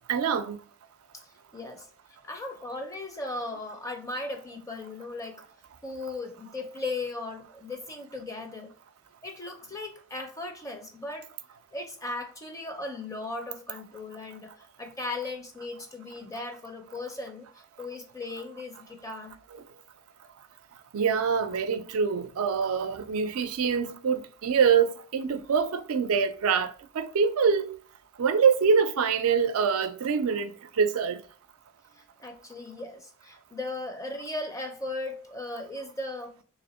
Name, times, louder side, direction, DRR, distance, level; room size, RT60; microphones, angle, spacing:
voice 1, 0.1-0.6 20.9-27.8 28.2-31.2, right 6 dB, 75° right, 0.4 m, -25 dB
voice 2, 1.5-1.9 2.2-5.4 5.8-8.7 9.2-11.3 11.7-14.5 14.8-17.5 17.8-19.4 32.2-36.3, left 2 dB, 15° left, 0.6 m, -37 dB
3.4 x 3.0 x 4.1 m
head